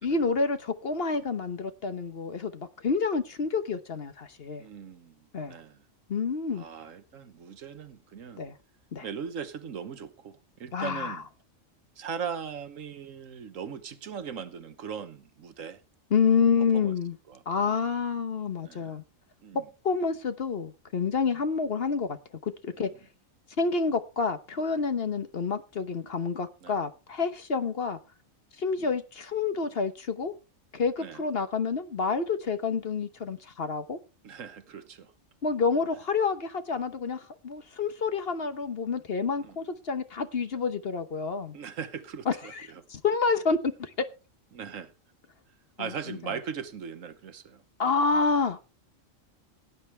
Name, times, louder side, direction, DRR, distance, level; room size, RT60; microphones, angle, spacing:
voice 1, 0.0-4.6 5.3-5.6 6.1-6.6 8.4-8.5 8.9-9.1 10.7-11.2 16.1-17.2 17.5-19.0 19.8-22.2 22.4-22.9 23.6-28.0 28.6-30.3 30.7-34.0 35.4-41.5 42.3-44.1 45.8-46.2 47.8-48.7, left 5 dB, 50° left, 1.2 m, -28 dB
voice 2, 4.6-5.8 6.6-8.4 9.0-11.3 12.0-15.8 16.3-16.5 16.7-16.9 17.3-17.4 18.6-18.9 19.4-19.7 21.2-21.4 22.8-22.9 26.6-26.8 28.8-28.9 31.0-31.2 34.2-35.1 39.4-39.6 41.5-42.8 44.5-44.9 45.8-47.9 48.4-48.5, right 7 dB, 75° right, 1.4 m, -39 dB
17.5 x 9.5 x 3.3 m
omnidirectional pair, 1.4 m